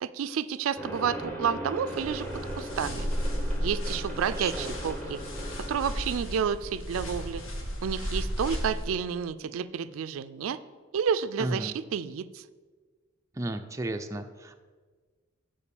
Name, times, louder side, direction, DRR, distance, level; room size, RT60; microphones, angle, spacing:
voice 1, 0.0-2.3 2.6-3.1 3.6-5.2 5.7-7.4 7.8-10.6 10.9-12.4, right 7 dB, 90° right, 14 dB, 0.4 m, -30 dB
sound 1, 0.8-6.8, equal, 10° left, 1.2 m, -39 dB
Wind instrument woodwind instrument, 0.9-6.1, equal, 60° left, 2.6 m, -51 dB
sound 2, 1.9-8.9, equal, 80° left, 1.4 m, -34 dB
voice 2, 4.3-4.8 11.4-11.7 13.3-14.5, right 2 dB, 15° right, 6 dB, 0.4 m, -34 dB
7.0 x 5.1 x 6.9 m, 1.4 s
head